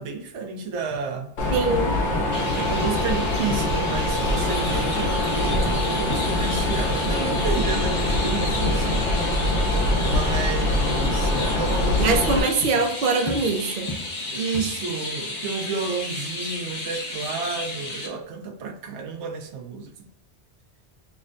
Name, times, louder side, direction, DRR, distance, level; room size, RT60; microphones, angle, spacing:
voice 1, 0.0-1.3 2.5-9.1 10.0-12.5 14.3-19.9, right 5 dB, 85° right, 0.9 m, -31 dB
sound 1, 0.9-1.0 1.5-1.7 2.2-2.4 2.8-3.0 3.5-3.7 4.2-4.4 4.8-5.1 5.5-5.8 6.1-6.3 6.8-7.6 8.0-8.3 8.7-8.9 9.4-9.6 10.0-10.3 10.7-10.9 11.4-11.6 12.0-12.2 12.6-12.9 13.3-13.5 13.9-14.1 14.5-14.7, left 2 dB, 25° left, 0.5 m, -34 dB
Mechanisms, 1.4-12.4, left 1 dB, 80° left, 1.1 m, -23 dB
voice 2, 1.5-2.0 12.0-13.9, right 3 dB, 60° right, 0.6 m, -23 dB
Chirp tweet, 2.3-18.1, left 2 dB, 45° left, 0.9 m, -33 dB
5.8 x 2.1 x 2.5 m
omnidirectional pair, 1.2 m